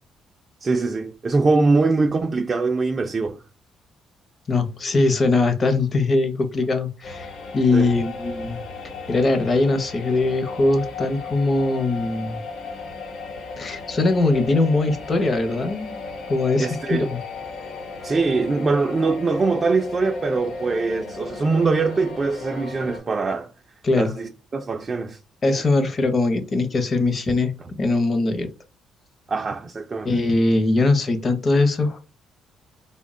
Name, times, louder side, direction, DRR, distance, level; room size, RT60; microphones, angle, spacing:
voice 1, 0.6-3.4 7.7-7.9 16.6-17.1 18.0-23.5 23.9-25.2 29.3-30.1, right 3 dB, 30° right, 0.3 m, -22 dB
voice 2, 4.5-8.6 9.1-12.4 13.6-15.9 16.3-17.2 23.8-24.1 25.4-27.5 27.8-28.5 30.0-32.0, left 2 dB, 30° left, 0.6 m, -21 dB
sound 1, 7.0-23.0, left 3 dB, 65° left, 0.9 m, -35 dB
3.5 x 2.1 x 3.6 m
cardioid pair, 135°, 0 cm